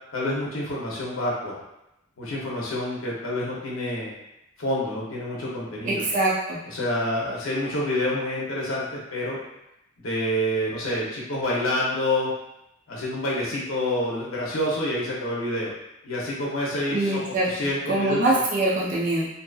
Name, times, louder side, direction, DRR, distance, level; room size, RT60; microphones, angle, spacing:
voice 1, 0.1-1.6 2.2-4.1 4.6-6.1 6.7-8.8 9.1-9.4 10.0-12.3 12.9-15.7 16.0-18.4, left 1 dB, 70° left, -5 dB, 0.7 m, -27 dB
voice 2, 5.9-6.6 16.9-19.3, right 2 dB, 35° right, -5 dB, 0.4 m, -24 dB
2.7 x 2.4 x 2.3 m, 0.88 s
head